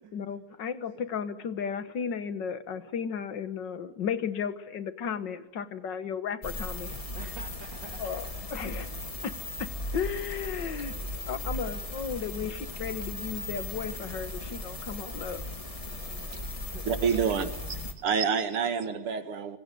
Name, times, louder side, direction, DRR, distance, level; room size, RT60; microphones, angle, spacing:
voice 1, 0.1-7.0 8.0-8.3 8.5-8.9 9.2-9.3 9.6-11.0 11.3-15.4, left 7 dB, 60° left, 12 dB, 2.0 m, -34 dB
sound 1, 6.4-17.9, left 1 dB, 15° left, 1.8 m, -37 dB
voice 2, 7.1-8.3 8.8-8.9 9.8-9.9 10.6-12.1 12.4-12.6 15.8-17.1, right 5 dB, 55° right, 3 dB, 2.6 m, -50 dB
voice 3, 16.9-19.6, right 6 dB, 85° right, 9 dB, 2.7 m, -28 dB
26.0 x 24.0 x 9.4 m, 0.86 s
omnidirectional pair, 2.4 m